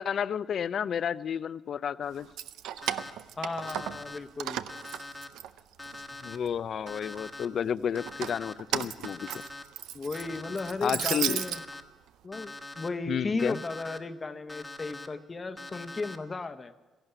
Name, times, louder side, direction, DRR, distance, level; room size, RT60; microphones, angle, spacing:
voice 1, 0.0-2.3 6.2-9.3 10.8-11.4 13.1-13.6, left 8 dB, 60° left, 18 dB, 0.4 m, -31 dB
Keys jangling, 2.2-4.1 4.4-6.0 6.4-7.2 7.9-11.6, right 11 dB, 85° right, 0.5 m, -35 dB
Alarm, 2.8-3.1 3.6-4.2 4.7-5.3 5.8-6.4 6.9-7.5 8.0-8.5 9.0-9.6 10.1-10.7 11.2-11.8 12.3-12.9 13.4-14.0 14.5-15.1 15.6-16.2, left 2 dB, 10° left, 1.2 m, -43 dB
voice 2, 3.4-4.6 9.9-11.6 12.2-16.7, left 3 dB, 30° left, 10 dB, 0.9 m, -35 dB
14.5 x 11.5 x 7.9 m, 1.2 s
cardioid pair, 90°, 0 cm